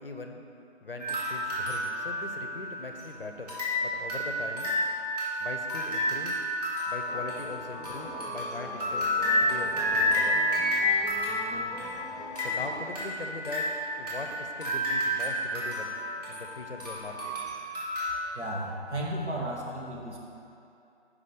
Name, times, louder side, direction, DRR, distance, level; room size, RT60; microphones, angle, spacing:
voice 1, 0.0-0.4 0.8-4.7 5.4-6.4 6.9-9.1 9.4-10.4 12.4-13.7 14.0-16.0 16.3-17.4, left 3 dB, 55° left, 4 dB, 0.6 m, -40 dB
sound 1, 1.0-3.0 3.5-18.2, left 1 dB, 35° right, 1.5 m, -30 dB
sound 2, 7.1-12.8, equal, ahead, 0.4 m, -43 dB
voice 2, 18.4-20.2, right 1 dB, 75° right, -2 dB, 1.4 m, -34 dB
5.0 x 4.9 x 5.6 m, 2.7 s
figure-of-eight pair, 165°, 35 cm